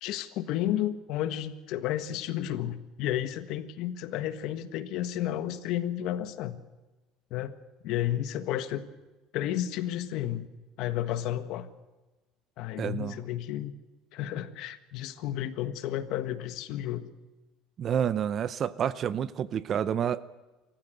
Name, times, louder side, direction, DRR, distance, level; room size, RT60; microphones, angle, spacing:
voice 1, 0.0-6.6 7.3-7.5 7.8-8.9 9.3-10.5 10.8-11.7 12.6-13.7 14.1-17.1, left 12 dB, 65° left, 11 dB, 1.5 m, -32 dB
voice 2, 12.8-13.2 17.8-20.3, right 8 dB, 40° right, 17 dB, 0.6 m, -29 dB
26.0 x 14.5 x 7.8 m, 1.2 s
cardioid pair, 140°, 0 cm